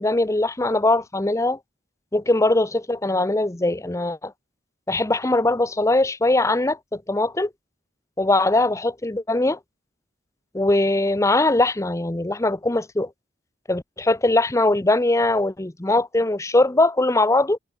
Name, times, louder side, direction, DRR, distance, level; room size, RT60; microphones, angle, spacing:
voice 1, 0.0-1.6 2.1-4.3 4.9-7.5 8.2-9.6 10.5-13.1 13.7-17.6, left 2 dB, 15° left, 0.8 m, -21 dB
head